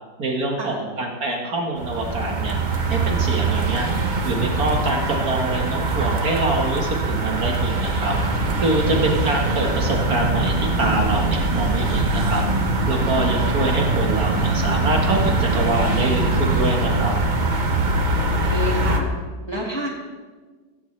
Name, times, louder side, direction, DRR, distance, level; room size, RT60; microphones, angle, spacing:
voice 1, 0.2-2.6 2.9-3.9 4.2-8.2 8.6-12.4 12.9-17.1, right 2 dB, 55° right, 1 dB, 2.0 m, -25 dB
sound 1, 1.8-19.0, right 2 dB, 30° right, 0.9 m, -22 dB
voice 2, 18.2-19.1 19.5-19.9, right 1 dB, 15° left, -2 dB, 1.8 m, -29 dB
15.5 x 15.5 x 3.3 m, 1.4 s
omnidirectional pair, 2.0 m